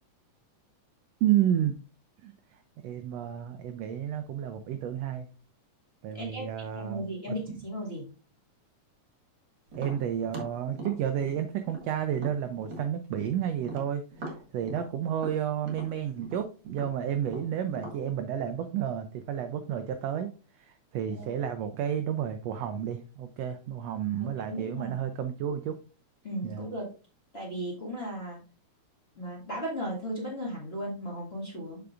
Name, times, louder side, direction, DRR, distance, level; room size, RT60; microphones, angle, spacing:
voice 1, 1.2-1.8 2.2-2.3 2.8-5.3 6.0-7.6 9.7-14.0 14.5-20.3 20.6-25.8 26.4-26.7, right 10 dB, 80° right, 8 dB, 1.5 m, -31 dB
voice 2, 6.1-8.0 21.1-21.3 24.2-25.0 26.2-26.9 27.3-28.4 29.2-31.8, equal, 25° left, -3 dB, 1.8 m, -36 dB
Tap, 9.7-13.3 13.6-18.0, right 2 dB, 40° right, 2.2 m, -41 dB
6.9 x 6.8 x 2.5 m, 0.34 s
omnidirectional pair, 3.5 m